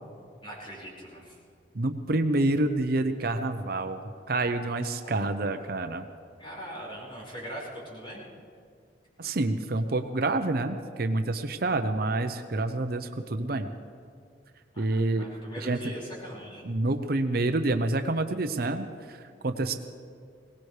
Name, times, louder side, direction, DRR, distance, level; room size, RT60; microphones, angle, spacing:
voice 1, 0.4-1.4 4.6-5.1 5.4-5.6 6.4-8.2 14.7-16.6, equal, 30° left, -5 dB, 5.1 m, -41 dB
voice 2, 1.7-4.0 4.3-6.0 9.2-13.7 14.8-15.3 15.6-15.8 16.6-19.7, right 2 dB, 55° right, 7 dB, 0.7 m, -28 dB
21.5 x 18.0 x 3.3 m, 2.2 s
head